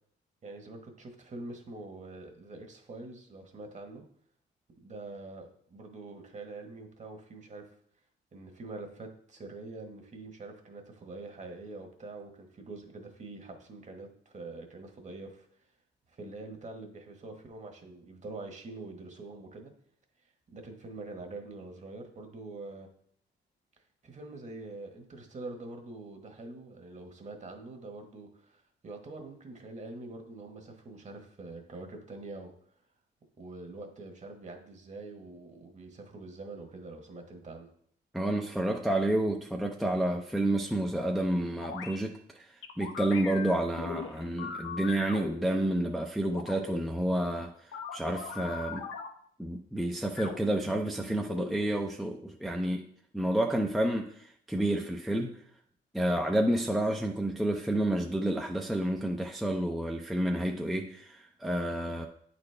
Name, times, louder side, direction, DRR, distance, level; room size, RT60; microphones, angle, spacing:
voice 1, 0.4-4.0 4.8-7.7 8.3-15.5 16.1-19.7 20.5-22.9 24.0-32.5 33.4-37.7, right 2 dB, 35° right, 4 dB, 1.3 m, -45 dB
voice 2, 38.1-42.5 42.8-47.5 47.9-48.8 49.4-52.8 53.1-55.4 55.9-62.1, right 1 dB, ahead, 1 dB, 0.5 m, -30 dB
sound 1, 41.6-42.0 42.6-45.8 46.3-46.8 47.7-49.1 50.2-51.5, left 6 dB, 85° left, 0.8 m, -40 dB
8.6 x 4.2 x 3.3 m, 0.64 s
cardioid pair, 90°, 20 cm